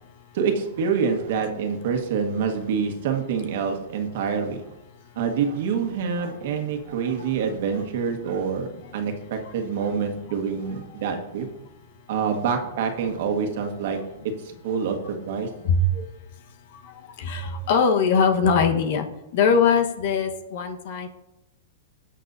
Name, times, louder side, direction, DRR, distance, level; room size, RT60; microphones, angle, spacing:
voice 1, 0.3-4.6 5.1-11.5 12.1-14.0 14.6-15.5, right 6 dB, 60° right, 4 dB, 1.6 m, -26 dB
voice 2, 6.8-7.3 7.7-7.8 10.3-10.4 15.6-16.1 16.8-19.1 19.3-21.1, left 5 dB, 60° left, 6 dB, 1.2 m, -22 dB
17.0 x 6.5 x 2.7 m, 0.91 s
hypercardioid pair, 140°, 0 cm